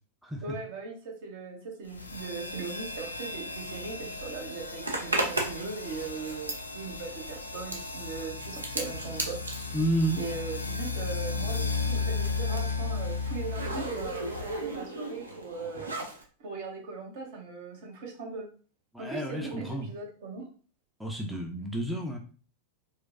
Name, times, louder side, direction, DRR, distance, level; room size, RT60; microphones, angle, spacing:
voice 1, 0.4-9.4 10.2-15.9 16.4-18.5 19.0-20.5, right 4 dB, 55° right, 1 dB, 1.0 m, -39 dB
sound 1, 1.9-14.8, left 4 dB, 80° left, 0.4 m, -35 dB
Zipper (clothing), 4.8-11.0 11.3-16.2, right 2 dB, 75° right, 0.6 m, -36 dB
voice 2, 9.7-10.2 15.8-15.9 18.9-19.9 21.0-22.2, right 1 dB, ahead, 0 dB, 0.5 m, -30 dB
4.4 x 2.2 x 2.5 m, 0.39 s
figure-of-eight pair, 90°, 0 cm